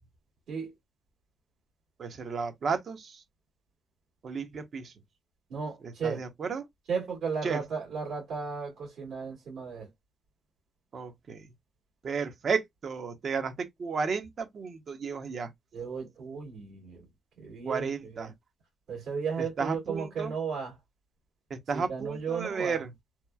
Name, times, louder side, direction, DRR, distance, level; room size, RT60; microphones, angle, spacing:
voice 1, 2.0-3.2 4.2-4.9 5.8-6.6 7.4-7.6 10.9-11.5 12.0-15.5 17.7-18.3 19.6-20.3 21.5-22.9, right 5 dB, 50° right, 0.7 m, -33 dB
voice 2, 5.5-6.2 6.9-9.9 15.7-17.1 17.4-18.3 18.9-20.7 21.7-22.8, right 5 dB, 75° right, 1.5 m, -35 dB
2.9 x 2.3 x 2.2 m
cardioid pair, 90°, 0 cm